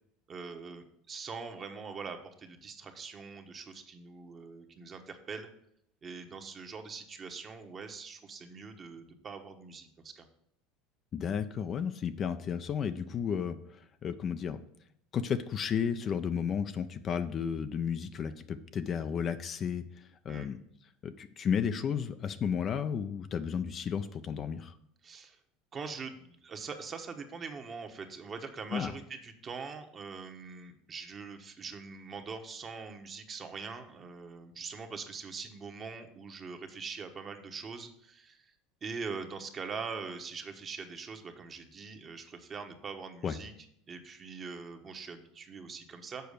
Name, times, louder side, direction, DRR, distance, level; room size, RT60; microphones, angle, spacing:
voice 1, 0.3-5.5 6.0-10.3 20.3-20.5 25.0-25.4 25.7-38.5 38.8-43.5 43.9-46.3, right 5 dB, 30° right, 6 dB, 1.1 m, -43 dB
voice 2, 11.1-13.6 14.0-14.6 15.1-20.6 21.0-24.7 28.7-28.9 43.2-43.4, left 7 dB, 35° left, 10 dB, 0.5 m, -33 dB
6.9 x 4.5 x 6.6 m, 0.72 s
supercardioid pair, 110°, 0 cm